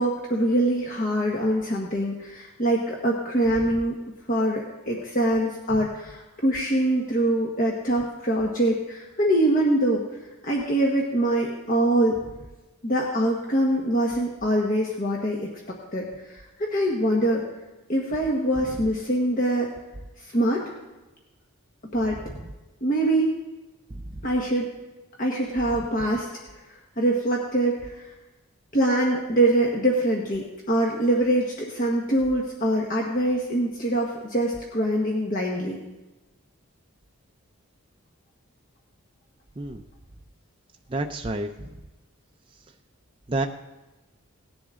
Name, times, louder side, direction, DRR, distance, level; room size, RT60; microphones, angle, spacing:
voice 1, 0.0-4.0 4.3-10.0 10.4-12.2 12.8-17.4 17.9-19.7 20.2-20.6 21.9-22.2 22.8-23.3 24.2-24.7 25.2-26.3 27.0-28.1 28.7-35.8, right 1 dB, 40° left, -1 dB, 1.3 m, -24 dB
voice 2, 23.9-24.2 39.6-39.8 40.9-41.8 43.3-43.5, right 2 dB, 25° right, 3 dB, 0.5 m, -30 dB
18.0 x 10.0 x 3.7 m, 1.1 s
head